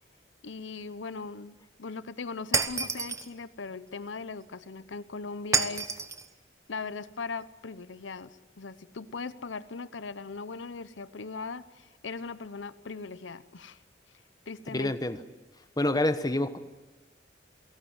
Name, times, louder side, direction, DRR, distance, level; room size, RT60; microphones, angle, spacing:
voice 1, 0.4-6.0 6.7-13.8 14.5-14.9, left 4 dB, 80° left, 15 dB, 0.8 m, -39 dB
Shatter, 2.5-3.3 5.5-6.3, right 4 dB, 15° right, 0.9 m, -28 dB
voice 2, 14.7-15.2 15.8-16.6, left 1 dB, 20° left, 10 dB, 1.1 m, -27 dB
28.5 x 17.5 x 7.9 m, 1.2 s
head